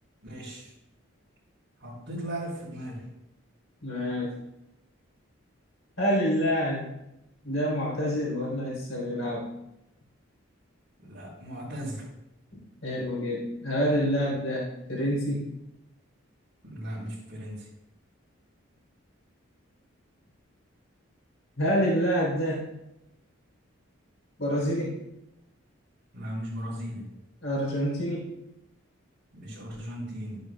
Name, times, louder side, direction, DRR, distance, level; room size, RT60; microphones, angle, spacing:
voice 1, 0.2-0.7 1.8-3.0 11.0-12.1 16.6-17.7 26.1-27.1 29.3-30.4, equal, 60° right, -11 dB, 3.8 m, -37 dB
voice 2, 3.8-4.3 6.0-6.9 7.4-9.5 12.8-15.5 21.6-22.7 24.4-25.0 27.4-28.3, equal, 70° left, -4 dB, 3.5 m, -27 dB
12.0 x 9.2 x 2.3 m, 0.87 s
head